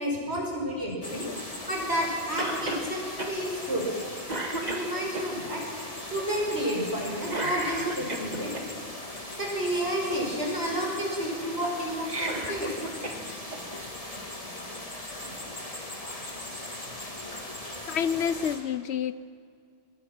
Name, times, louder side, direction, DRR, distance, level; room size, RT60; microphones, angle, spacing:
voice 1, 0.0-1.3 1.7-3.8 4.6-5.6 6.1-8.5 9.4-12.7, equal, 75° right, -2 dB, 6.0 m, -30 dB
sound 1, 1.0-18.6, left 1 dB, 35° left, 2.7 m, -39 dB
Cough, 2.4-2.9 3.2-3.3 3.8-4.0 4.3-5.3 7.3-8.6 11.9-13.2 13.5-13.6 14.7-14.8, right 2 dB, 40° right, 2.0 m, -33 dB
voice 2, 17.9-19.1, left 8 dB, 80° left, 15 dB, 1.0 m, -29 dB
24.0 x 21.0 x 6.0 m, 2.2 s
omnidirectional pair, 1.1 m